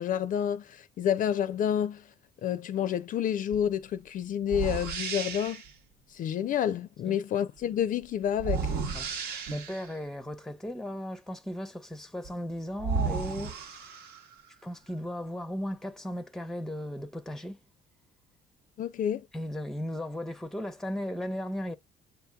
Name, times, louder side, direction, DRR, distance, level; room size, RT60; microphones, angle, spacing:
voice 1, 0.0-2.1 2.4-5.6 6.1-8.7 18.8-19.3, left 9 dB, 50° left, 0.5 m, -29 dB
sound 1, 3.5-3.7 4.5-5.7 8.4-10.0 12.2-12.3 12.8-14.4, right 5 dB, 70° right, 1.0 m, -33 dB
voice 2, 8.9-13.6 14.6-17.6 19.3-21.7, equal, ahead, 0.6 m, -36 dB
8.0 x 2.8 x 2.2 m
cardioid pair, 110°, 17 cm